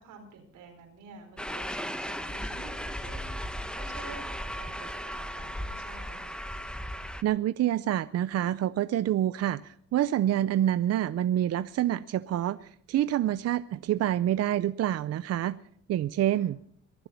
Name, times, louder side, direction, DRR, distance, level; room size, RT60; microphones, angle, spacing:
voice 1, 0.0-6.4 16.3-16.5, right 4 dB, 90° right, 4 dB, 4.1 m, -49 dB
sound 1, 1.4-7.2, equal, 5° left, 1.1 m, -36 dB
voice 2, 7.2-15.6 15.9-16.6, right 12 dB, 55° right, 15 dB, 0.5 m, -27 dB
23.0 x 8.0 x 5.7 m, 0.66 s
cardioid pair, 90°, 30 cm